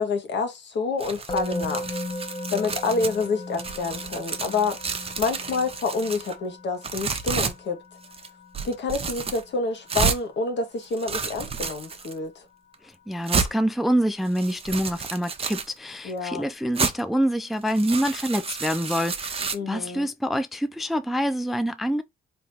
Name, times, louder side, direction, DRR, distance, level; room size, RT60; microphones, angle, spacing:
voice 1, 0.0-1.8 2.5-4.8 5.2-7.8 8.6-12.4 16.0-16.4 19.5-20.1, left 4 dB, 65° left, 1.3 m, -28 dB
sound 1, 1.0-3.3 3.5-6.4 6.8-7.5 8.0-8.3 8.5-9.4 9.9-10.2 10.8-12.1 12.7-12.8 13.3-13.5 14.3-15.7 16.8-16.9 17.5-19.6, right 5 dB, 30° right, 0.7 m, -30 dB
Musical instrument, 1.3-12.4, left 2 dB, 25° left, 0.9 m, -38 dB
voice 2, 13.1-22.0, equal, ahead, 0.3 m, -26 dB
3.6 x 2.9 x 2.8 m
cardioid pair, 90°, 20 cm